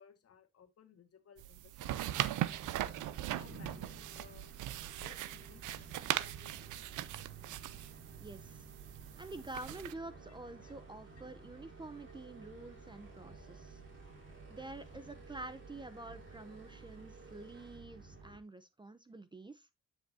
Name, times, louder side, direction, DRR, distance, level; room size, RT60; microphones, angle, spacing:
voice 1, 0.0-2.8 3.4-4.5 5.0-7.0 10.6-10.7 14.9-15.1 18.1-18.2, left 7 dB, 55° left, 1.8 m, -61 dB
sound 1, 1.4-9.9, right 14 dB, 80° right, 0.7 m, -40 dB
sound 2, 2.0-18.4, right 4 dB, 40° right, 4.7 m, -53 dB
voice 2, 8.2-8.6 9.2-13.8 14.5-19.7, right 2 dB, 15° right, 0.7 m, -48 dB
9.8 x 6.3 x 2.7 m
cardioid pair, 90°, 30 cm